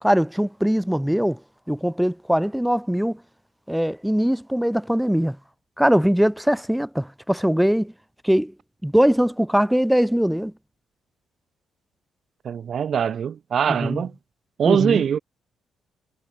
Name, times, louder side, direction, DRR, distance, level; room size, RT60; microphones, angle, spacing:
voice 1, 0.0-1.4 1.7-3.2 3.7-5.4 5.8-7.9 8.2-8.5 8.8-10.5 13.7-14.0 14.7-15.0, equal, 5° right, 0.5 m, -21 dB
voice 2, 12.4-14.1 14.6-15.2, right 8 dB, 55° right, 0.4 m, -22 dB
cardioid pair, 90°, 0 cm